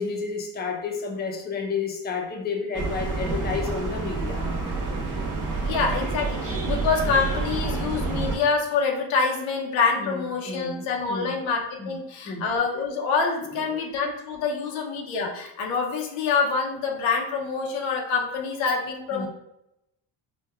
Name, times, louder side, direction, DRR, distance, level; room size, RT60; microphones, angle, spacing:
voice 1, 0.0-4.4 10.0-11.3 11.8-11.9 12.3-12.5 19.1-19.3, left 5 dB, 20° left, 2 dB, 0.6 m, -31 dB
sound 1, 2.7-8.4, right 3 dB, 45° right, 1.0 m, -28 dB
voice 2, 5.6-19.3, left 5 dB, 85° left, 1 dB, 0.7 m, -26 dB
4.4 x 2.2 x 2.3 m, 0.84 s
cardioid pair, 100°, 45 cm